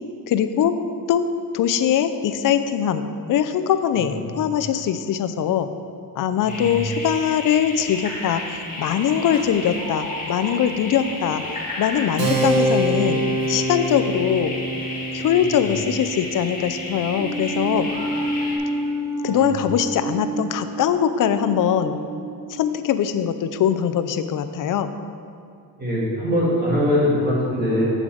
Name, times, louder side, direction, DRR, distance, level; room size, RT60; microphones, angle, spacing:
voice 1, 0.3-0.8 1.1-1.3 1.5-5.7 6.2-11.4 11.8-13.2 13.5-14.5 15.1-17.9 19.2-22.0 22.5-24.9, left 9 dB, 55° left, 10 dB, 0.5 m, -22 dB
voice 2, 3.9-4.5 6.4-6.8 15.5-15.7 19.2-19.5 25.8-27.9, left 1 dB, 25° right, -7 dB, 2.4 m, -23 dB
sound 1, 6.5-18.6, left 2 dB, 20° left, 1.8 m, -33 dB
Keyboard (musical), 12.2-18.3, right 1 dB, 80° right, 1.6 m, -26 dB
sound 2, 17.2-23.6, right 1 dB, 10° right, 0.4 m, -29 dB
7.9 x 7.2 x 4.9 m, 2.4 s
cardioid pair, 145°, 38 cm